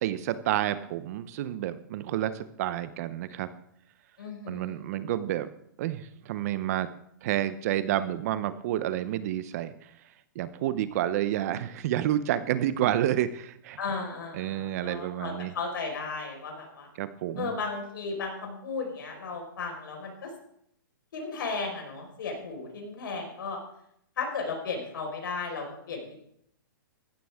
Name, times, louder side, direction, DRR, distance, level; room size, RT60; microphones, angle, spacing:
voice 1, 0.0-3.5 4.5-5.5 5.8-6.9 7.2-9.7 10.4-13.8 14.3-15.5 17.0-17.5, right 12 dB, 45° right, 13 dB, 0.7 m, -29 dB
voice 2, 4.2-4.8 13.8-16.9 17.4-20.3 21.1-23.6 24.2-26.2, left 4 dB, 75° left, 1 dB, 4.8 m, -35 dB
16.0 x 13.0 x 3.6 m, 0.72 s
hypercardioid pair, 145°, 11 cm